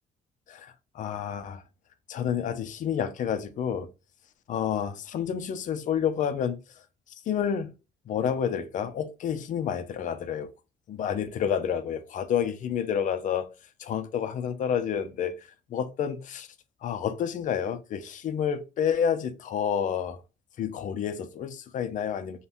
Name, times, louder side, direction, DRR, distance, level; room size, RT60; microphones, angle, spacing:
voice 1, 0.5-1.6 2.1-3.9 4.5-6.6 7.3-7.7 8.1-10.5 10.9-13.5 13.8-16.5 16.8-20.2 20.6-22.4, left 8 dB, 50° left, 0.5 m, -29 dB
2.5 x 2.2 x 3.3 m
cardioid pair, 110°, 17 cm